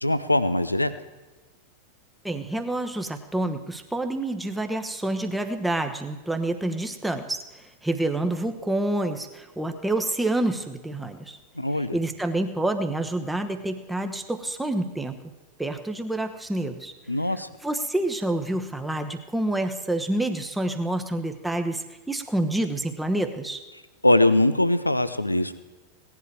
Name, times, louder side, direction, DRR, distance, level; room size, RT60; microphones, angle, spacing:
voice 1, 0.0-0.9 11.6-12.0 17.1-17.5 24.0-25.5, left 1 dB, 85° left, 13 dB, 0.6 m, -21 dB
voice 2, 2.2-11.4 11.9-15.2 15.6-16.9 17.6-23.6, right 1 dB, 5° right, 6 dB, 1.1 m, -28 dB
17.5 x 11.0 x 4.8 m, 1.2 s
figure-of-eight pair, 90°, 0 cm